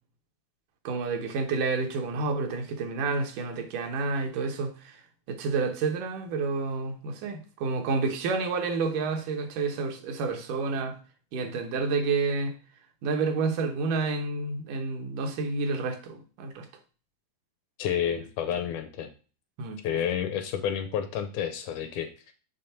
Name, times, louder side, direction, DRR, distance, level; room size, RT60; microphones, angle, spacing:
voice 1, 0.8-5.0 5.3-11.0 11.3-12.6 13.0-16.7 19.6-19.8, right 4 dB, 75° right, 2.5 m, -29 dB
voice 2, 17.8-19.1 19.8-22.3, left 9 dB, 75° left, 2.0 m, -30 dB
6.9 x 3.2 x 5.5 m
omnidirectional pair, 3.8 m